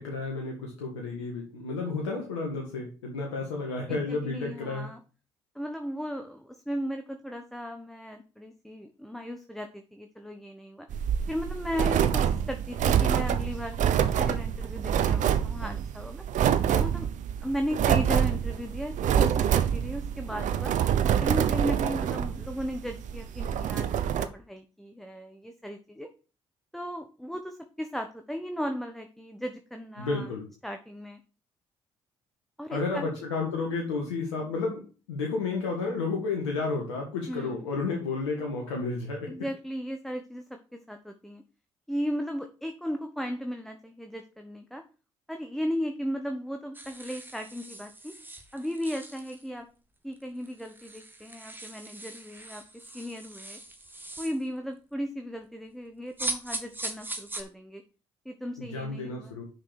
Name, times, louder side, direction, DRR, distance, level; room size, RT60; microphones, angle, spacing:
voice 1, 0.0-4.9 30.0-30.4 32.7-34.8 35.1-39.3 58.6-59.4, left 3 dB, 90° left, 0 dB, 1.7 m, -31 dB
voice 2, 3.9-5.0 5.5-10.9 11.3-16.2 16.8-17.1 17.4-20.7 21.2-26.1 26.7-30.3 30.6-31.2 32.6-33.1 37.3-37.6 39.3-41.4 41.9-44.8 45.3-48.1 48.5-49.7 50.0-53.6 54.2-57.8 58.2-59.4, equal, ahead, 5 dB, 1.3 m, -36 dB
sound 1, 10.9-24.2, right 9 dB, 60° right, 0.8 m, -26 dB
sound 2, 46.7-49.5 50.1-50.2 50.4-54.4 56.2-57.4, right 1 dB, 15° right, 1.9 m, -40 dB
6.2 x 6.2 x 6.5 m, 0.35 s
hypercardioid pair, 50°, 14 cm